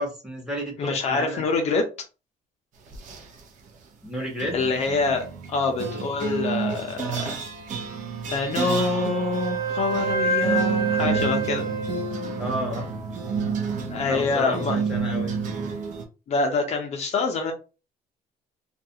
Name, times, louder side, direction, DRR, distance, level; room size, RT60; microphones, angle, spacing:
voice 1, 0.0-1.4 4.0-4.6 12.4-12.9 14.0-15.3, equal, 5° right, 1.0 m, -31 dB
voice 2, 0.8-1.9 4.5-7.3 8.3-11.6 13.9-14.8 16.3-17.5, left 4 dB, 45° left, 0.5 m, -26 dB
sound 1, 2.9-3.4 4.4-16.0, right 5 dB, 60° right, 0.6 m, -30 dB
Wind instrument woodwind instrument, 8.6-12.8, right 3 dB, 85° right, 0.9 m, -28 dB
2.3 x 2.3 x 2.7 m
cardioid pair, 140°, 15 cm